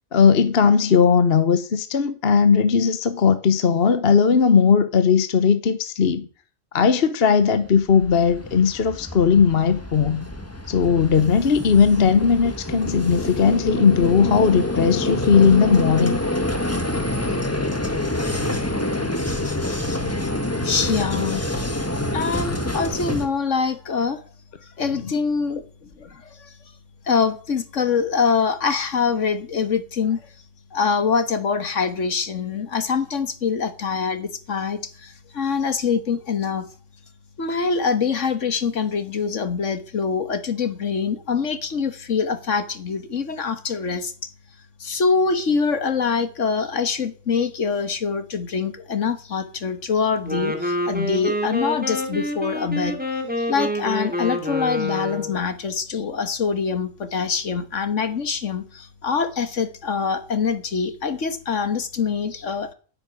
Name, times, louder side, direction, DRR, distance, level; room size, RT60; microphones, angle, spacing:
voice 1, 0.1-6.3 6.7-10.2 10.7-16.2, left 6 dB, 50° left, 1.2 m, -18 dB
Vehicle, 7.6-23.3, left 1 dB, 10° left, 1.4 m, -27 dB
voice 2, 20.6-21.7 22.1-24.2 24.8-26.5 27.0-30.2 30.7-36.7 37.4-44.1 44.8-53.0 53.4-62.7, left 5 dB, 65° left, 1.7 m, -24 dB
Wind instrument woodwind instrument, 50.2-55.4, left 1 dB, 5° right, 2.5 m, -27 dB
10.5 x 9.2 x 9.8 m
omnidirectional pair, 1.4 m